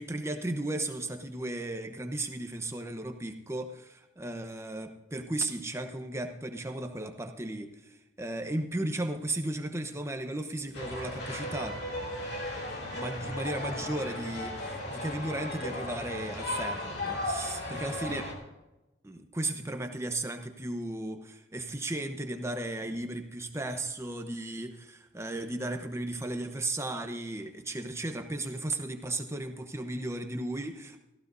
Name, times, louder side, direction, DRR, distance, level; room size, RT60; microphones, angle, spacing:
voice 1, 0.0-11.7 12.9-18.3 19.0-31.0, right 2 dB, 15° right, 6 dB, 0.9 m, -35 dB
sound 1, 10.7-18.3, left 1 dB, 55° left, 2.8 m, -36 dB
17.0 x 15.0 x 2.7 m, 1.0 s
head